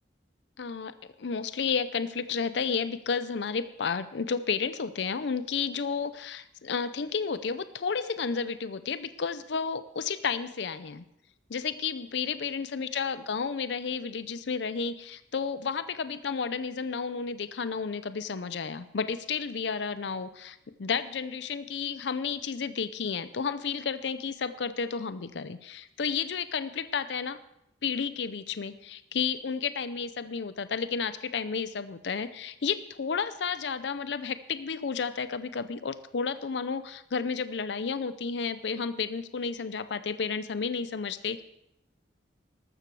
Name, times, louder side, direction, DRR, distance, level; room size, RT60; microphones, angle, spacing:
voice 1, 0.6-11.0 11.5-27.4 27.8-41.4, left 5 dB, 65° left, 13 dB, 0.5 m, -32 dB
13.5 x 13.0 x 4.7 m, 0.81 s
head